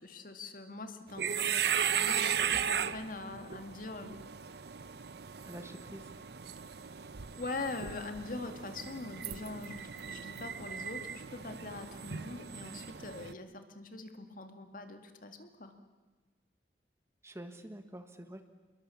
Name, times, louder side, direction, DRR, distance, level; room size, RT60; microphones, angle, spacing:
voice 1, 0.0-4.2 7.4-15.7, left 3 dB, 50° left, 7 dB, 2.2 m, -43 dB
sound 1, 1.1-13.3, right 7 dB, 65° right, 0.8 m, -36 dB
voice 2, 5.4-6.1 17.2-18.4, right 1 dB, 15° right, 8 dB, 1.4 m, -47 dB
27.5 x 22.0 x 7.2 m, 1.3 s
head